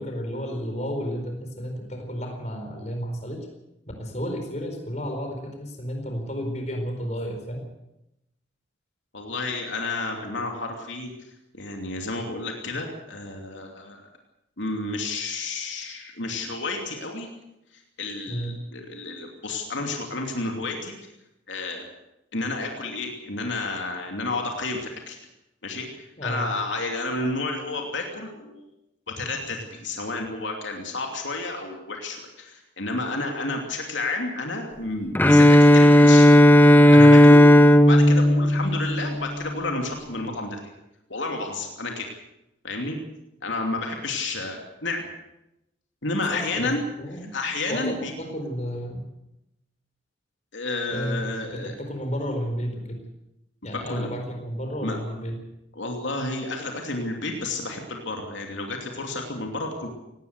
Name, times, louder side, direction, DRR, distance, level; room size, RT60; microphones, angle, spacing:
voice 1, 0.0-3.5 4.0-7.6 18.3-18.6 26.2-26.5 36.9-37.2 46.3-46.7 47.0-47.3 47.7-49.0 50.9-51.2 51.5-53.0 53.6-55.4, equal, 35° left, 3 dB, 4.5 m, -32 dB
voice 2, 9.1-11.1 11.5-14.1 14.6-17.3 18.0-21.0 21.5-21.9 22.3-25.2 25.6-28.6 29.1-36.3 36.9-37.5 37.8-40.6 41.1-42.1 42.6-43.0 43.4-45.1 46.0-46.8 47.3-48.1 50.5-51.7 53.6-54.1 54.8-55.0 55.7-59.9, left 2 dB, 75° left, 2 dB, 2.9 m, -31 dB
Bowed string instrument, 35.2-39.2, left 1 dB, 10° left, 0.8 m, -13 dB
18.5 x 18.0 x 8.1 m, 0.89 s
head